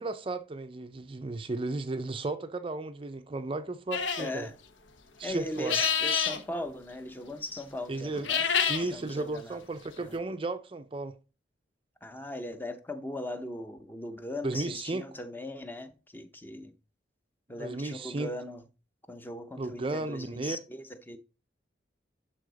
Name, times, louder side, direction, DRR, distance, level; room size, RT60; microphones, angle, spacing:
voice 1, 0.0-4.5 5.2-5.8 7.9-8.3 8.7-11.1 14.4-15.0 17.6-18.3 19.6-20.6, right 2 dB, 30° right, 0.5 m, -34 dB
sound 1, 3.9-4.3 5.5-6.4 8.1-8.8, left 7 dB, 85° left, 1.0 m, -27 dB
voice 2, 4.2-4.6 5.2-8.4 8.8-9.6 10.0-10.2 12.0-16.7 17.5-18.6 19.1-21.2, left 1 dB, 10° left, 0.6 m, -39 dB
11.5 x 4.1 x 4.0 m
head